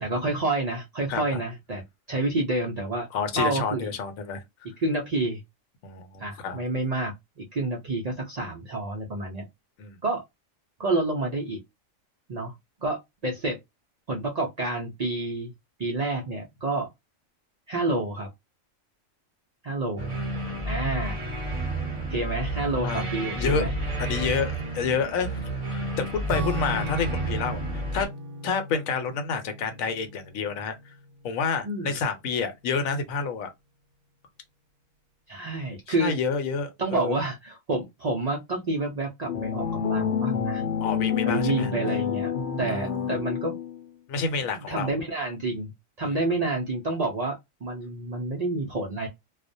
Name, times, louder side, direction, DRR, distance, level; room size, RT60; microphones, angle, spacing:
voice 1, 0.0-3.1 3.4-3.9 4.8-5.4 6.2-9.4 10.0-10.2 10.8-11.6 12.3-12.5 12.8-13.6 14.1-15.5 15.8-16.9 17.7-18.3 19.6-20.1 20.6-21.2 22.1-23.7 31.6-32.0 35.3-36.1 36.8-40.6 41.2-42.3 42.6-43.5 44.7-45.7 46.0-47.4 47.6-49.1, right 2 dB, 85° right, 0.3 m, -28 dB
voice 2, 1.1-1.4 3.1-4.4 5.8-6.6 9.8-10.0 22.8-23.1 23.4-23.7 24.0-28.1 28.4-30.9 31.2-33.5 35.9-37.2 40.8-41.7 42.7-43.1 44.1-44.9 46.0-46.1, left 5 dB, 85° left, 1.1 m, -29 dB
sound 1, 20.0-28.1, right 1 dB, 30° right, 0.7 m, -31 dB
Acoustic guitar / Strum, 26.3-31.1, right 1 dB, 65° right, 0.8 m, -36 dB
sound 2, 39.3-43.8, left 7 dB, 65° left, 0.8 m, -28 dB
2.4 x 2.1 x 2.5 m
omnidirectional pair, 1.4 m